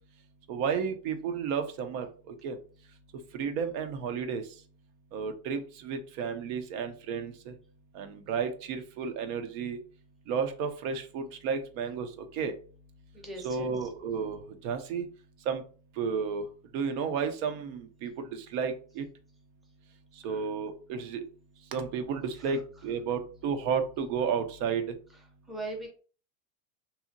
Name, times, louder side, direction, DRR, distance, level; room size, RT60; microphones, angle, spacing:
voice 1, 0.5-2.6 3.3-4.4 5.1-7.5 7.9-9.8 10.3-12.5 13.4-15.1 15.5-15.6 16.0-16.4 16.7-19.0 20.2-21.2 21.7-24.9, right 6 dB, 65° right, 7 dB, 0.6 m, -32 dB
voice 2, 13.1-13.9 20.2-20.5 22.4-22.8 25.1-25.2 25.5-25.9, right 2 dB, ahead, -1 dB, 0.6 m, -41 dB
2.8 x 2.4 x 2.5 m, 0.40 s
supercardioid pair, 125°, 37 cm